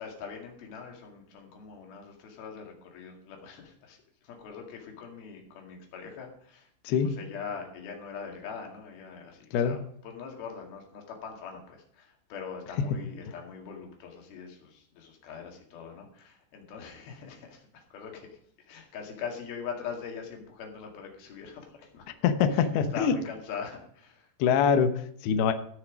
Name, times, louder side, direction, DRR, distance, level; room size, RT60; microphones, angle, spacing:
voice 1, 0.0-22.1 22.5-24.3, left 6 dB, 55° left, 2 dB, 3.6 m, -42 dB
voice 2, 22.2-23.1 24.4-25.5, left 7 dB, 75° left, 8 dB, 2.4 m, -24 dB
16.5 x 6.3 x 5.1 m, 0.64 s
omnidirectional pair, 5.8 m